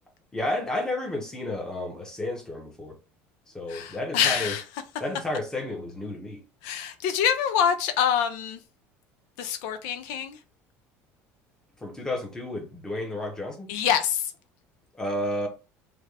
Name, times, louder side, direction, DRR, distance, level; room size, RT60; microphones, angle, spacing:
voice 1, 0.3-2.9 3.5-4.6 5.0-6.4 11.8-13.7 15.0-15.5, left 1 dB, 10° left, 0.8 m, -31 dB
voice 2, 3.7-4.6 6.6-8.6 9.4-10.4 13.7-14.3, left 8 dB, 80° left, 0.5 m, -25 dB
3.3 x 2.3 x 3.3 m
cardioid pair, 140°, 6 cm